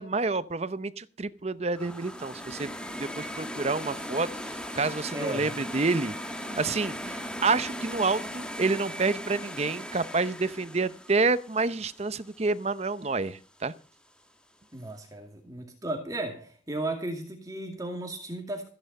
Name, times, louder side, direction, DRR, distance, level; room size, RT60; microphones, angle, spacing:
voice 1, 0.0-2.7 3.0-6.1 6.6-13.7, right 3 dB, 35° right, 0.7 m, -28 dB
sound 1, 1.7-12.7, equal, 5° left, 1.5 m, -38 dB
voice 2, 5.1-5.5 14.7-18.7, right 2 dB, 20° right, 2.2 m, -35 dB
14.5 x 10.5 x 5.3 m
head